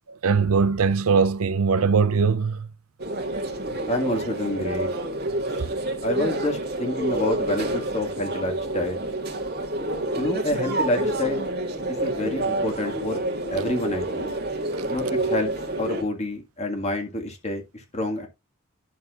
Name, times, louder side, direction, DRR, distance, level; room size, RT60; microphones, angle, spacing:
voice 1, 0.2-2.7 7.0-7.1, right 5 dB, 85° right, 0.6 m, -21 dB
sound 1, 3.0-16.0, right 1 dB, 50° right, 1.9 m, -28 dB
voice 2, 3.9-4.9 5.5-5.6 6.0-9.1 10.2-11.5 11.9-13.2 13.5-14.3 14.9-15.5 15.8-18.3, left 1 dB, 30° left, 2.0 m, -28 dB
11.0 x 6.9 x 2.5 m
head